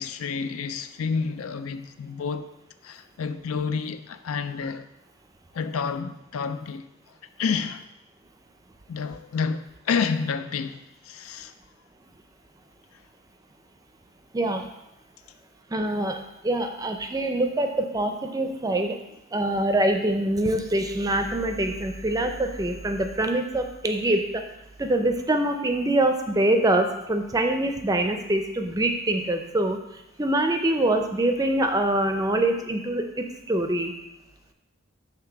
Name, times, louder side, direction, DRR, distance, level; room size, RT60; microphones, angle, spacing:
voice 1, 0.0-2.5 2.8-4.9 5.5-6.8 7.4-7.9 8.9-11.5, left 5 dB, 80° left, 0.4 m, -29 dB
voice 2, 14.3-14.7 15.7-19.0 19.3-24.4 24.8-33.9, right 1 dB, 15° right, 0.5 m, -24 dB
5.9 x 3.3 x 5.7 m
head